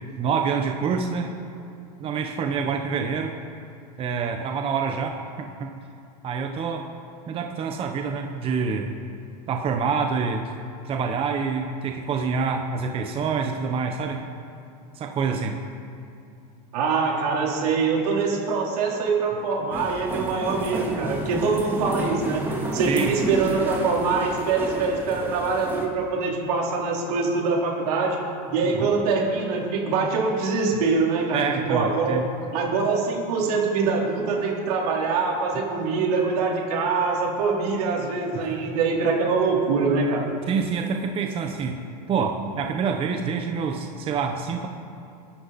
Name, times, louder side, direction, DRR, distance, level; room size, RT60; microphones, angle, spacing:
voice 1, 0.2-1.3 2.0-3.4 4.0-5.7 6.2-6.9 7.3-8.9 9.5-10.4 10.8-14.2 14.9-15.6 22.9-23.1 28.7-28.9 31.3-32.3 38.3-38.8 40.5-41.8 42.1-44.7, right 5 dB, 30° right, 4 dB, 1.0 m, -26 dB
voice 2, 16.7-22.4 22.7-28.2 28.5-32.2 32.5-40.3, right 4 dB, 80° right, -2 dB, 4.0 m, -24 dB
sound 1, 19.7-25.9, right 1 dB, 10° right, 2.6 m, -31 dB
22.0 x 11.5 x 4.2 m, 2.7 s
supercardioid pair, 140°, 20 cm